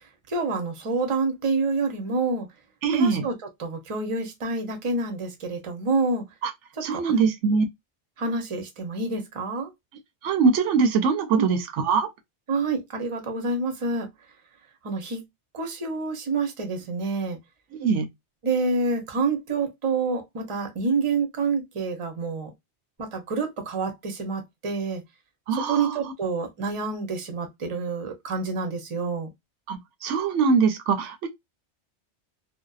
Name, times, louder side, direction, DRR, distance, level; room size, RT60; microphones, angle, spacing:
voice 1, 0.3-2.5 2.9-3.3 3.6-6.2 6.8-7.3 8.2-9.7 11.4-11.5 12.5-14.1 14.8-15.2 15.5-17.4 18.4-22.5 23.0-25.0 25.5-29.3, right 3 dB, 35° right, 0.6 m, -28 dB
voice 2, 2.8-3.3 6.4-6.5 6.8-7.6 10.2-12.1 17.7-18.1 25.5-26.0 29.7-31.3, right 5 dB, 85° right, 0.9 m, -22 dB
2.6 x 2.1 x 2.3 m
omnidirectional pair, 1.2 m